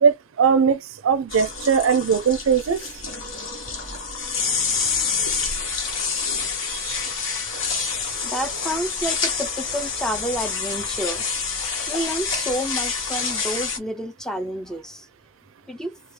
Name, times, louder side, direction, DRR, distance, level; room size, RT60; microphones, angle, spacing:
voice 1, 0.0-2.8 6.7-7.0, right 6 dB, 80° right, 0.4 m, -20 dB
sound 1, 1.3-13.8, left 5 dB, 70° left, 1.2 m, -27 dB
voice 2, 8.2-11.2 11.9-15.1 15.7-15.9, equal, 5° left, 0.5 m, -29 dB
2.8 x 2.3 x 3.2 m
head